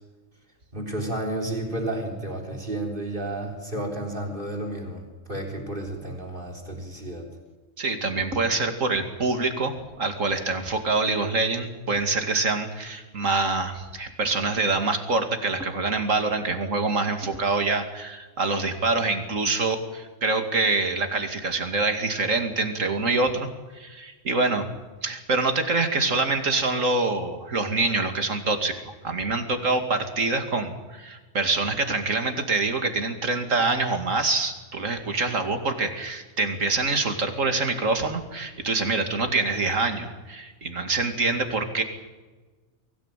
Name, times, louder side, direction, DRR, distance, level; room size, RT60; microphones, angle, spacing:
voice 1, 0.7-7.3, right 1 dB, 40° right, 3 dB, 4.0 m, -32 dB
voice 2, 7.8-23.5 23.7-24.7 25.0-41.8, right 3 dB, 80° right, 6 dB, 2.7 m, -25 dB
23.5 x 17.0 x 9.1 m, 1.3 s
omnidirectional pair, 1.3 m